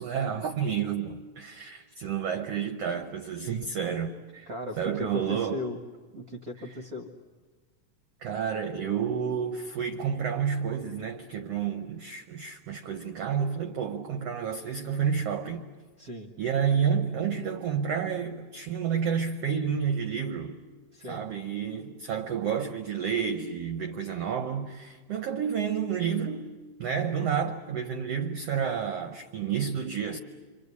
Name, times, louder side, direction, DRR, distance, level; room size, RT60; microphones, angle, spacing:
voice 1, 0.0-4.5 4.8-5.6 8.2-15.6 16.4-20.6 21.1-30.2, right 7 dB, 70° right, 1.5 m, -30 dB
voice 2, 4.5-5.8 6.1-7.1 16.0-16.3 20.9-21.3, left 2 dB, 55° right, 1.0 m, -37 dB
27.5 x 25.5 x 8.3 m
omnidirectional pair, 3.9 m